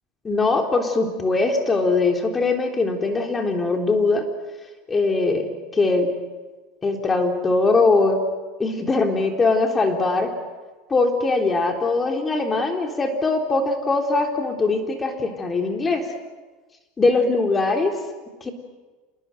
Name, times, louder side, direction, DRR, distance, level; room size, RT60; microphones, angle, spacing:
voice 1, 0.2-4.3 4.9-6.1 6.8-8.2 8.6-10.3 10.9-16.1 17.0-17.9 18.4-18.5, left 3 dB, 20° left, 4 dB, 3.7 m, -21 dB
27.5 x 20.5 x 9.1 m, 1.3 s
supercardioid pair, 115°, 0 cm